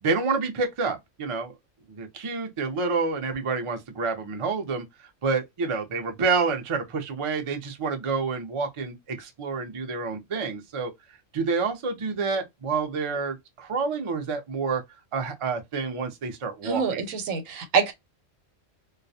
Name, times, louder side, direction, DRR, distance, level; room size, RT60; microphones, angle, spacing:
voice 1, 0.0-1.5 1.9-4.9 5.2-10.9 11.3-14.8 15.1-17.0, right 4 dB, 50° right, 0.4 m, -28 dB
voice 2, 16.6-17.9, right 6 dB, 85° right, 1.0 m, -26 dB
2.3 x 2.1 x 2.6 m
omnidirectional pair, 1.3 m